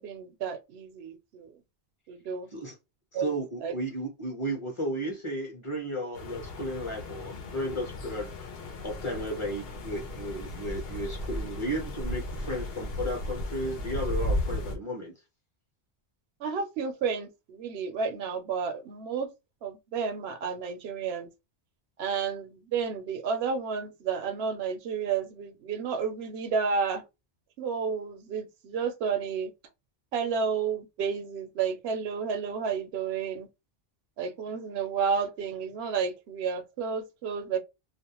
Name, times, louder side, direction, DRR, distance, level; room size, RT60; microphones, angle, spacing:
voice 1, 0.0-1.5 2.1-2.5 3.1-3.3 3.6-3.7 16.4-19.3 19.6-21.3 22.0-27.0 27.6-29.5 30.1-33.5 34.2-37.6, right 6 dB, 80° right, 0.8 m, -31 dB
voice 2, 3.2-8.5 8.8-15.1, equal, 30° left, 0.8 m, -34 dB
sound 1, 6.1-14.8, left 1 dB, 70° left, 0.9 m, -35 dB
2.4 x 2.0 x 2.8 m
omnidirectional pair, 1.0 m